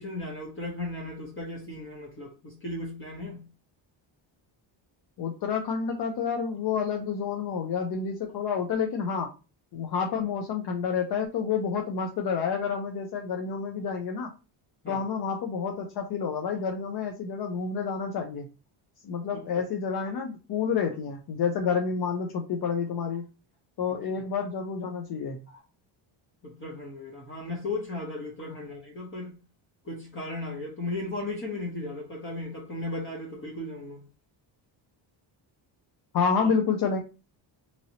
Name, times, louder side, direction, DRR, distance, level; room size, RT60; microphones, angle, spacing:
voice 1, 0.0-3.4 14.8-15.0 19.3-19.6 23.9-24.0 25.5-25.6 26.4-29.4 29.8-34.1 36.4-36.5, left 2 dB, 25° left, 0.9 m, -36 dB
voice 2, 5.2-9.3 9.7-14.3 14.9-18.5 19.0-23.2 23.8-25.4 36.1-37.0, left 6 dB, 50° left, 0.6 m, -29 dB
3.0 x 2.8 x 2.7 m
cardioid pair, 150°, 47 cm